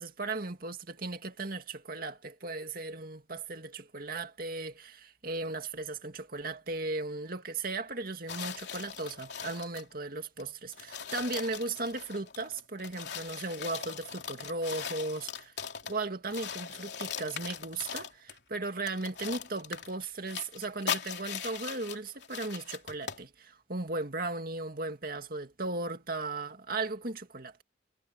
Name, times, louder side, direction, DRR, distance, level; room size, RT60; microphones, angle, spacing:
voice 1, 0.0-15.5 15.9-27.6, right 3 dB, 50° right, 2.3 m, -36 dB
sound 1, 8.3-9.9 10.4-10.5 10.7-16.0 16.3-18.4 18.9-23.2, left 7 dB, 65° left, 3.4 m, -40 dB
head